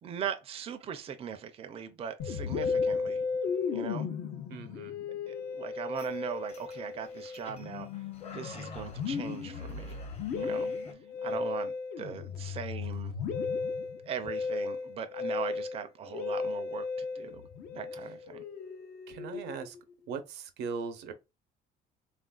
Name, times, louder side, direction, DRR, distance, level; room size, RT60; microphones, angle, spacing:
voice 1, 0.0-3.2 3.7-4.1 5.3-7.9 8.2-10.0 10.4-10.7 11.2-13.1 14.0-17.4 17.7-18.4, right 8 dB, 35° right, 0.4 m, -40 dB
Musical instrument, 2.2-19.8, left 5 dB, 65° left, 0.6 m, -35 dB
voice 2, 4.5-5.0 11.3-11.5 19.1-19.8 20.1-21.1, right 5 dB, 80° right, 0.6 m, -39 dB
sound 1, 5.9-10.9, left 4 dB, 40° left, 0.8 m, -50 dB
3.3 x 2.4 x 2.2 m
cardioid pair, 110°, 17 cm